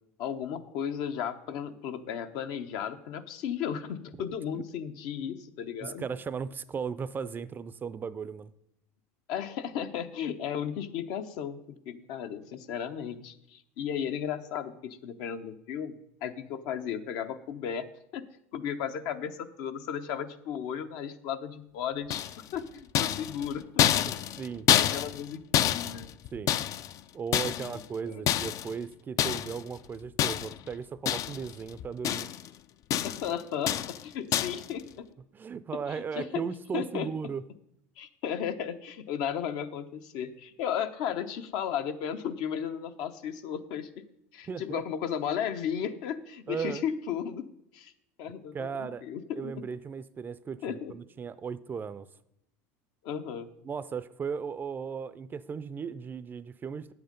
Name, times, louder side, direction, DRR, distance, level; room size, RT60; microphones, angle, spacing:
voice 1, 0.2-6.0 9.3-11.6 11.9-17.9 18.1-18.3 18.5-22.2 22.5-24.1 24.7-26.1 27.5-28.2 33.0-35.1 35.9-36.4 36.7-37.1 38.0-44.0 44.3-47.5 47.7-47.9 48.2-49.6 50.6-50.9 53.0-53.5, left 8 dB, 65° left, 9 dB, 0.8 m, -35 dB
voice 2, 5.8-8.5 24.0-24.7 26.3-26.5 27.1-32.3 35.3-37.4 44.5-44.8 46.5-46.8 48.5-49.0 49.4-52.1 53.6-56.9, right 6 dB, 25° right, 15 dB, 0.4 m, -36 dB
sound 1, 22.1-22.6 23.0-25.3 25.5-27.0 27.3-27.9 28.3-28.7 29.2-29.6 30.2-30.7 31.1-31.5 31.8-32.5 32.9-33.3 33.7-34.0 34.3-34.7, left 11 dB, 45° left, 0.4 m, -27 dB
9.3 x 7.9 x 5.2 m, 0.78 s
supercardioid pair, 110°, 8 cm